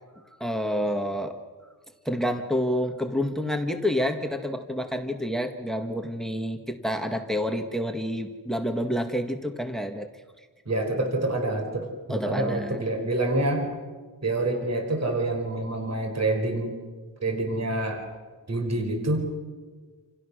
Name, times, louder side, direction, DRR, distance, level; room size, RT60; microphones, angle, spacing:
voice 1, 0.4-1.4 2.1-10.1 12.1-12.8, equal, ahead, 5 dB, 1.7 m, -28 dB
voice 2, 10.7-13.7 14.2-16.8 17.2-18.0 18.5-19.2, right 2 dB, 40° right, 3 dB, 4.7 m, -27 dB
28.5 x 28.5 x 6.5 m, 1.4 s
wide cardioid pair, 170°, 42 cm